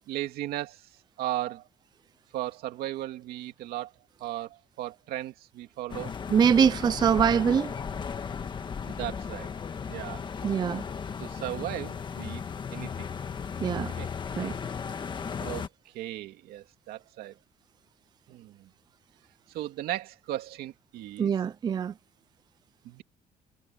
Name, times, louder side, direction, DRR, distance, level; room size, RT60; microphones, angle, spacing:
voice 1, 0.1-0.9 1.2-1.7 2.3-3.9 4.2-6.1 8.9-9.5 9.9-10.2 11.2-12.4 12.7-13.1 13.8-14.1 15.3-17.4 18.3-18.7 19.5-21.3 22.8-23.0, right 14 dB, 80° right, 2.6 m, -36 dB
sound 1, 5.9-15.7, left 6 dB, 30° left, 1.6 m, -36 dB
voice 2, 6.3-7.7 10.4-10.8 13.6-13.9 14.4-14.6 21.2-21.9, right 7 dB, 25° right, 0.4 m, -23 dB
cardioid pair, 140°, 16 cm